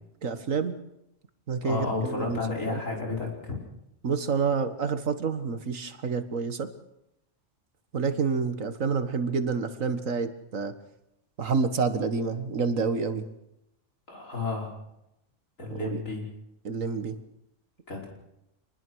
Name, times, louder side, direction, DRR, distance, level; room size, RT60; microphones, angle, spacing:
voice 1, 0.2-0.8 1.5-2.4 2.7-2.8 4.0-6.7 7.9-10.7 11.4-13.3 15.7-16.0 16.6-17.2, right 5 dB, 80° right, 10 dB, 1.9 m, -28 dB
voice 2, 1.6-3.6 14.1-14.7 15.6-16.2 17.9-18.1, left 3 dB, 80° left, 0 dB, 5.7 m, -32 dB
26.0 x 20.5 x 6.3 m, 0.85 s
omnidirectional pair, 1.3 m